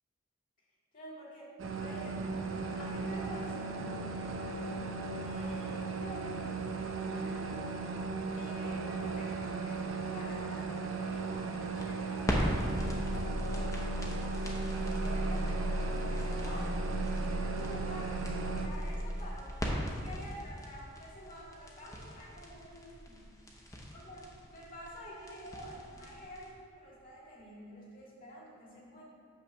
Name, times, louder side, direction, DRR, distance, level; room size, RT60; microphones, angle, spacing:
voice 1, 0.9-4.0 5.2-6.4 7.0-8.0 8.3-16.9 17.3-19.5 19.8-23.3 23.9-29.0, equal, 40° left, -5 dB, 2.0 m, -49 dB
sound 1, 1.6-18.7, right 4 dB, 75° right, 0.7 m, -37 dB
sound 2, 11.3-26.5, equal, 15° left, 0.9 m, -36 dB
8.9 x 3.3 x 6.4 m, 2.3 s
head